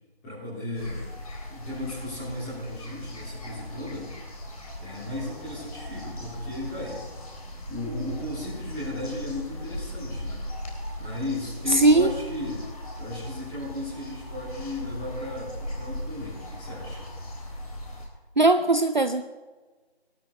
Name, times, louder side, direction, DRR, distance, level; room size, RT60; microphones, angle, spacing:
voice 1, 0.2-4.1 4.8-7.0 7.7-10.5 11.0-12.7 13.0-17.1, left 1 dB, 5° left, -10 dB, 3.2 m, -35 dB
sound 1, 0.7-18.1, left 1 dB, 35° left, 3.4 m, -38 dB
voice 2, 11.7-12.1 18.4-19.2, right 2 dB, 45° right, 9 dB, 0.6 m, -19 dB
19.0 x 12.5 x 4.3 m, 1.3 s
figure-of-eight pair, 170°, 32 cm